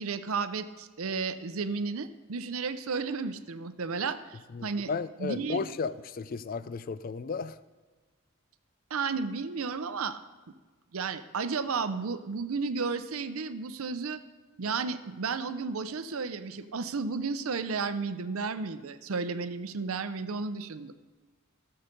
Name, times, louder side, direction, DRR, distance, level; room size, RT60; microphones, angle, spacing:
voice 1, 0.0-4.9 5.2-5.6 8.9-10.2 10.9-14.2 14.6-20.9, right 4 dB, 85° right, 12 dB, 0.6 m, -33 dB
voice 2, 4.5-7.6, left 4 dB, 40° left, 15 dB, 0.4 m, -34 dB
14.0 x 6.7 x 5.2 m, 1.3 s
head